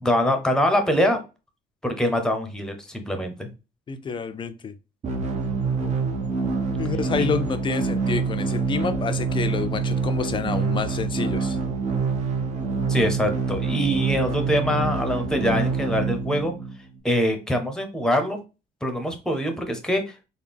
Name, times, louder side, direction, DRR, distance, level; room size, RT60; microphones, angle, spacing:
voice 1, 0.0-1.2 1.8-3.5 12.9-16.5 17.0-18.4 18.8-20.1, equal, 5° left, 0.8 m, -24 dB
voice 2, 3.9-4.8 6.8-11.6, left 5 dB, 30° left, 0.5 m, -28 dB
sound 1, 5.0-17.0, right 4 dB, 45° right, 0.9 m, -26 dB
3.9 x 2.2 x 3.4 m
cardioid pair, 110°, 17 cm